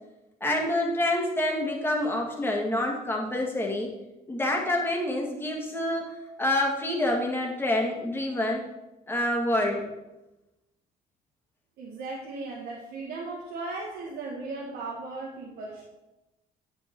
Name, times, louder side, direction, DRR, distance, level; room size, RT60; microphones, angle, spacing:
voice 1, 0.4-3.9 4.3-8.6 9.1-9.8, left 1 dB, 15° left, 0 dB, 2.0 m, -27 dB
voice 2, 11.8-15.8, right 3 dB, 70° right, -3 dB, 1.5 m, -37 dB
9.3 x 5.6 x 4.6 m, 0.99 s
cardioid pair, 110°, 17 cm